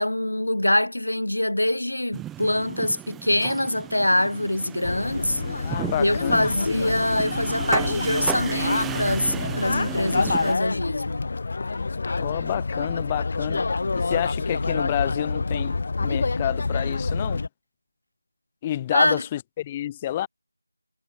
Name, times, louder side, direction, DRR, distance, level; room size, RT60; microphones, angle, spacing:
voice 1, 0.0-5.4 6.0-11.3 18.9-19.2, left 1 dB, 80° left, 2.7 m, -24 dB
sound 1, 2.1-10.5, right 12 dB, 5° right, 1.3 m, -34 dB
sound 2, 4.8-17.5, left 3 dB, 40° left, 2.4 m, -27 dB
voice 2, 5.6-6.5 12.2-13.7 13.9-17.4 18.6-20.3, left 12 dB, 15° left, 1.9 m, -29 dB
figure-of-eight pair, 170°, 0 cm